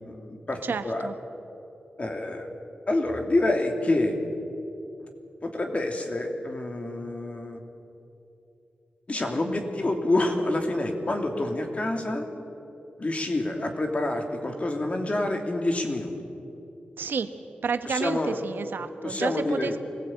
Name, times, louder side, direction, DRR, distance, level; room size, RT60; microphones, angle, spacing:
voice 1, 0.1-1.1 2.0-2.5 2.9-4.2 5.4-7.6 9.1-12.3 13.0-16.1 17.8-18.4 19.0-19.8, left 2 dB, 40° left, 3 dB, 2.9 m, -27 dB
voice 2, 0.6-1.1 17.0-17.3 17.6-19.8, right 5 dB, 85° right, 9 dB, 1.2 m, -30 dB
23.0 x 17.0 x 8.9 m, 2.8 s
cardioid pair, 75°, 3 cm